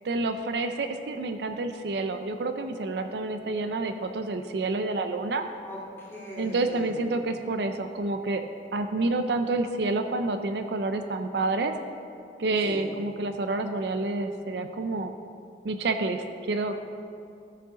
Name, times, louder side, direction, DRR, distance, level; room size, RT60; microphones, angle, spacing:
voice 1, 0.0-5.5 6.4-8.4 8.7-11.7 12.4-15.2 15.6-16.7, right 2 dB, 65° right, 7 dB, 0.5 m, -28 dB
voice 2, 5.6-7.1 12.6-12.8, equal, 15° left, -7 dB, 2.3 m, -40 dB
14.0 x 6.6 x 3.8 m, 2.5 s
head